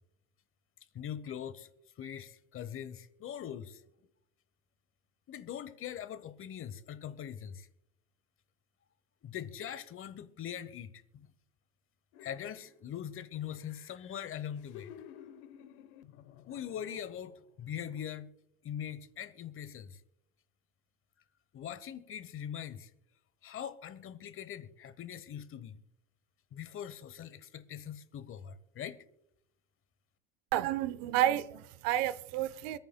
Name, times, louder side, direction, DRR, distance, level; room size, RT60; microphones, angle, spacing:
voice 1, 0.9-1.7 2.0-3.8 5.3-7.7 9.2-11.3 12.2-14.9 16.5-18.3 18.6-20.0 21.5-22.9 23.4-25.8 26.5-29.0, left 9 dB, 40° left, 1.0 m, -42 dB
sound 1, 12.1-12.9 13.3-17.5 17.9-18.0, left 10 dB, 65° left, 1.1 m, -54 dB
voice 2, 30.5-32.8, right 12 dB, 65° right, 0.8 m, -30 dB
25.5 x 9.1 x 2.2 m
hypercardioid pair, 80°, 34 cm